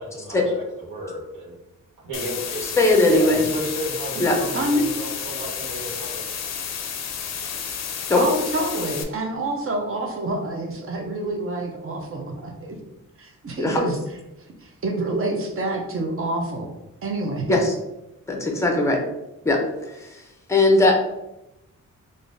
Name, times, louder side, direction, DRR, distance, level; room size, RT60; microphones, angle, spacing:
voice 1, 0.0-1.6 2.0-2.6 3.1-6.3, right 1 dB, 75° right, -8 dB, 1.0 m, -33 dB
sound 1, 2.1-9.0, left 7 dB, 60° left, 0.4 m, -31 dB
voice 2, 2.6-3.4 4.2-4.4 8.1-8.2 13.6-13.9 17.5-17.7 18.3-19.0 19.4-20.2 20.5-21.0, left 2 dB, 10° left, 1 dB, 0.5 m, -19 dB
voice 3, 4.5-4.9 8.2-12.8 13.2-14.0 14.6-16.7 17.0-17.6, right 1 dB, 45° right, 2 dB, 0.6 m, -27 dB
3.5 x 2.5 x 2.6 m, 0.92 s
wide cardioid pair, 135°, 31 cm